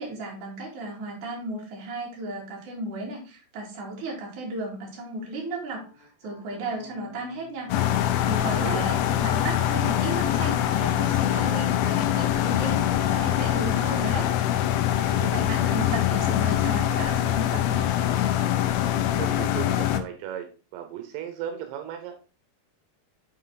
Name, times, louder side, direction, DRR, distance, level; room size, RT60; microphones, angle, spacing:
voice 1, 0.0-14.3 14.9-17.9, right 2 dB, 55° right, -2 dB, 3.5 m, -35 dB
sound 1, 5.7-9.6 9.9-13.7, left 3 dB, 50° left, 2.9 m, -46 dB
sound 2, 7.7-20.0, left 12 dB, 80° left, 2.3 m, -24 dB
voice 2, 8.5-8.9 15.0-15.5 19.1-22.1, right 10 dB, 85° right, 5 dB, 2.8 m, -36 dB
9.0 x 4.1 x 3.9 m, 0.35 s
omnidirectional pair, 4.6 m